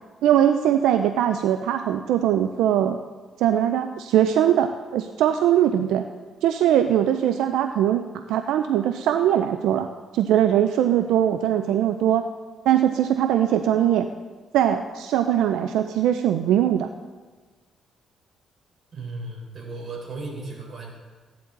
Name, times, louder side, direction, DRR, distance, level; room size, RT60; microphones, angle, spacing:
voice 1, 0.2-3.0 3.4-6.0 6.4-9.9 10.1-12.3 12.7-14.1 14.5-16.9, right 10 dB, 90° right, 8 dB, 0.5 m, -21 dB
voice 2, 18.9-20.9, right 2 dB, 45° right, -1 dB, 4.2 m, -35 dB
16.0 x 10.5 x 3.9 m, 1.4 s
cardioid pair, 90°, 0 cm